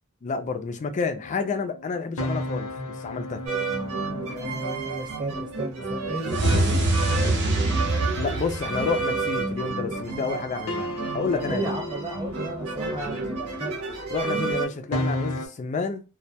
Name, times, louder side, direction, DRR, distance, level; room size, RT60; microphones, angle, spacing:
voice 1, 0.2-2.7 3.0-3.4 8.2-10.9 11.1-11.7 14.1-16.0, left 5 dB, 35° left, 0.4 m, -29 dB
sound 1, 0.8-10.1 10.7-15.5, left 1 dB, 70° left, 0.7 m, -36 dB
sound 2, 3.5-14.7, right 3 dB, 85° right, 0.8 m, -31 dB
voice 2, 4.3-6.9 11.3-13.8, right 1 dB, 20° right, 0.8 m, -34 dB
sound 3, 6.3-9.4, right 2 dB, 55° right, 0.5 m, -24 dB
2.2 x 2.1 x 2.7 m
head